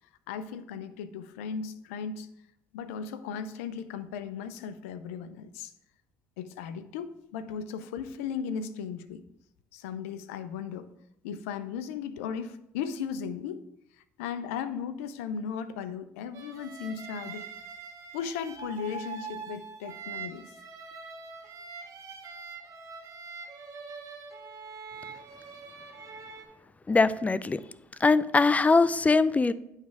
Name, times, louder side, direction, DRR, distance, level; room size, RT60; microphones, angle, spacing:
voice 1, 0.3-2.3 2.7-5.7 6.4-9.2 9.7-10.9 11.2-13.6 14.2-17.5 18.1-20.5, left 7 dB, 85° left, 13 dB, 0.5 m, -36 dB
sound 1, 16.3-26.4, right 5 dB, 50° right, 1.6 m, -43 dB
voice 2, 26.9-27.6 28.0-29.5, left 3 dB, 20° left, 17 dB, 0.4 m, -22 dB
9.4 x 3.3 x 4.7 m, 0.81 s
hypercardioid pair, 70°, 7 cm